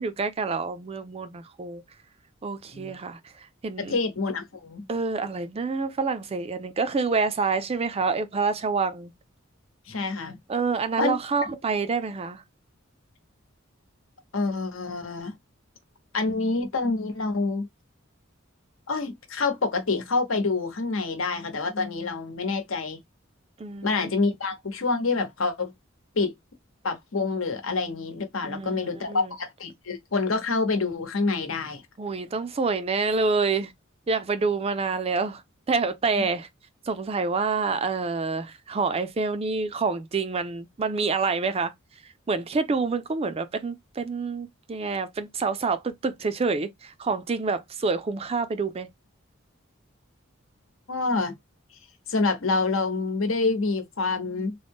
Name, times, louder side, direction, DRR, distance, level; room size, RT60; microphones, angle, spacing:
voice 1, 0.0-1.8 2.4-3.2 3.6-4.0 4.9-9.1 10.5-12.4 23.6-24.1 28.4-29.3 32.0-33.7 34.1-35.4 35.7-36.5 36.9-41.7 42.3-48.9, right 4 dB, 30° right, 0.4 m, -27 dB
voice 2, 3.9-4.8 9.9-10.4 11.0-11.2 14.3-15.3 16.1-17.7 18.9-23.0 23.8-25.7 26.1-26.3 26.8-31.8 50.9-51.4 52.1-54.6, left 3 dB, 75° left, 1.0 m, -27 dB
3.8 x 2.1 x 3.5 m
head